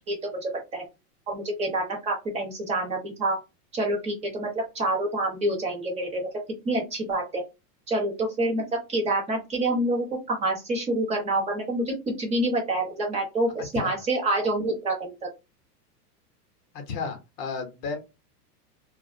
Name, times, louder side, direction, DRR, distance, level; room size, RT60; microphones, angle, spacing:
voice 1, 0.1-0.8 1.3-3.4 3.7-4.5 4.7-6.3 6.6-7.4 7.9-8.6 8.9-15.3, right 1 dB, 15° right, 0 dB, 0.7 m, -27 dB
voice 2, 16.7-18.0, left 5 dB, 35° left, 5 dB, 0.7 m, -33 dB
2.3 x 2.1 x 2.5 m, 0.25 s
hypercardioid pair, 140°, 47 cm